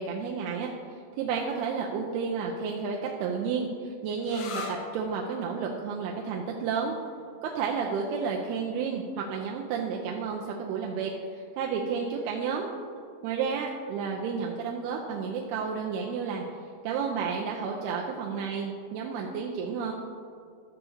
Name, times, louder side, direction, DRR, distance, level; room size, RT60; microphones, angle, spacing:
voice 1, 0.0-7.0 7.4-12.7 13.2-16.4 16.8-19.9, right 5 dB, 90° right, -1 dB, 2.6 m, -31 dB
sound 1, 4.2-11.6, left 4 dB, 75° left, 2.5 m, -46 dB
12.5 x 7.0 x 2.7 m, 2.3 s
omnidirectional pair, 4.5 m